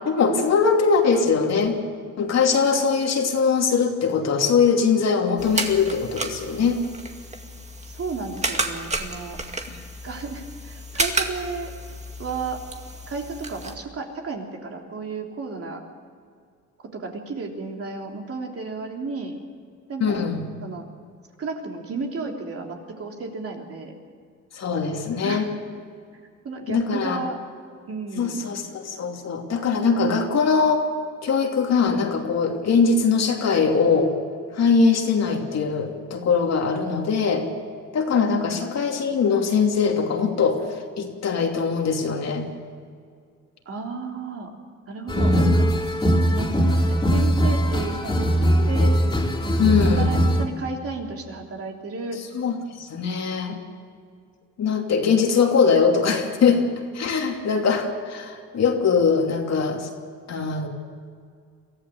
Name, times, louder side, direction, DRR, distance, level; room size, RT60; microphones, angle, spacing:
voice 1, 0.0-1.8 2.2-6.8 9.7-9.8 20.0-20.5 24.5-25.5 26.7-27.2 28.2-30.9 31.2-34.1 34.5-37.5 37.9-40.6 41.0-42.5 45.1-45.6 49.6-50.1 52.3-53.6 54.6-56.6 56.9-59.9 60.3-60.7, left 5 dB, 60° left, 2 dB, 2.9 m, -21 dB
sound 1, 5.4-13.8, right 2 dB, 20° right, 2.2 m, -31 dB
voice 2, 7.9-9.4 10.0-11.7 12.2-12.6 13.1-15.8 16.8-19.3 19.9-20.3 20.6-20.8 21.4-23.9 25.2-25.5 26.4-27.4 27.9-28.5 43.6-44.5 44.9-45.6 46.3-48.9 49.9-52.2, right 4 dB, 50° right, 1 dB, 3.4 m, -33 dB
sound 2, 45.1-50.5, equal, 15° left, 3.7 m, -20 dB
23.0 x 14.5 x 8.0 m, 2.1 s
cardioid pair, 90°, 30 cm